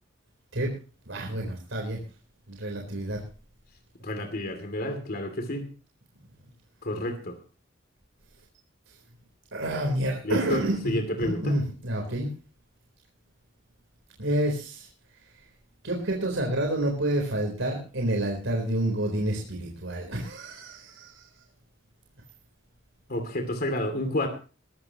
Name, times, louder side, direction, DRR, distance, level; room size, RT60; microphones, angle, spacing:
voice 1, 1.1-2.0 2.5-3.2 9.5-12.3 14.2-14.9 15.8-21.3, right 1 dB, 85° right, 1 dB, 4.0 m, -29 dB
voice 2, 4.0-5.7 6.8-7.4 10.2-11.5 23.1-24.3, left 1 dB, 50° left, 6 dB, 2.7 m, -30 dB
21.5 x 13.5 x 3.0 m, 0.35 s
head